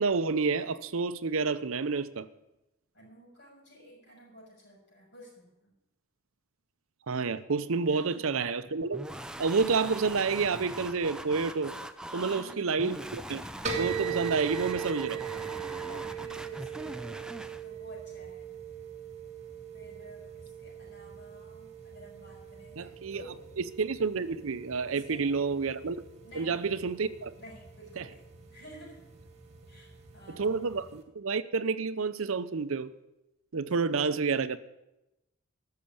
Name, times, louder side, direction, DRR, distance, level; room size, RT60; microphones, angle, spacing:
voice 1, 0.0-2.3 7.1-9.0 9.4-11.7 12.1-13.4 13.8-15.2 22.8-23.2 23.6-26.1 26.4-27.3 28.0-28.1 30.4-32.9 33.5-34.6, right 4 dB, 70° right, 0.6 m, -29 dB
voice 2, 2.9-5.7 7.8-8.2 12.1-12.9 15.8-17.0 17.6-18.5 19.7-23.4 24.9-25.3 26.2-26.6 27.4-28.2 28.5-29.0 29.7-30.5, equal, 50° left, 6.5 m, -51 dB
sound 1, 8.9-17.6, right 1 dB, 5° right, 0.4 m, -41 dB
sound 2, 13.6-31.0, right 8 dB, 30° right, 1.8 m, -41 dB
14.0 x 6.7 x 8.7 m
head